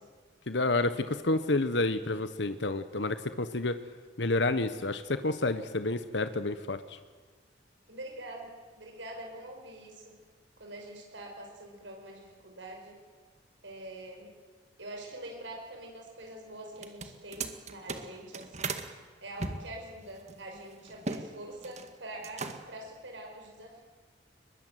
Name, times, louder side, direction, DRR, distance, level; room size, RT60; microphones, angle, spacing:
voice 1, 0.5-3.8 4.2-7.0, left 2 dB, 75° left, 11 dB, 1.2 m, -29 dB
voice 2, 7.9-10.1 10.6-13.0 13.6-14.3 14.8-18.8 19.2-23.8, right 1 dB, 85° right, 1 dB, 5.7 m, -45 dB
sound 1, 16.7-18.9 19.4-21.2 21.5-21.9 22.2-22.8, right 3 dB, 40° right, 2.0 m, -37 dB
23.0 x 21.5 x 9.2 m, 1.5 s
head